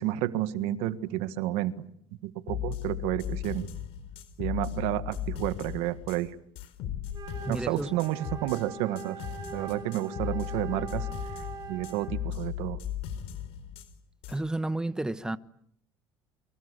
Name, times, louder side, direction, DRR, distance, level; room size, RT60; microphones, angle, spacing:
voice 1, 0.0-1.8 2.2-3.7 4.4-6.3 7.5-9.2 9.5-11.1 11.7-12.8, right 14 dB, 80° right, 1.7 m, -30 dB
sound 1, 2.5-6.2 6.6-8.6 9.0-13.9 14.2-14.4, left 10 dB, 75° left, 4.1 m, -37 dB
Wind instrument woodwind instrument, 7.1-12.3, right 4 dB, 45° right, 5.5 m, -42 dB
voice 2, 7.5-7.9 14.3-15.4, right 2 dB, 5° right, 1.2 m, -31 dB
29.0 x 24.5 x 8.3 m
supercardioid pair, 95°, 10 cm